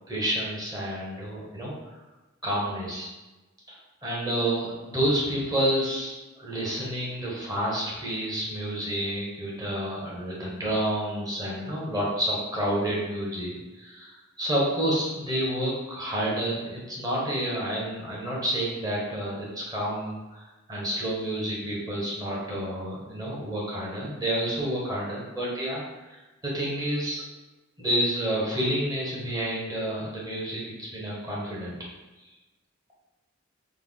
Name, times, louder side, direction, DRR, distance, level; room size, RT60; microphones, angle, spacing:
voice 1, 0.1-1.7 2.4-3.1 3.7-3.8 4.0-6.1 6.4-27.2 27.8-31.8, right 1 dB, 20° right, -6 dB, 0.9 m, -29 dB
3.1 x 2.1 x 3.5 m, 1.1 s
head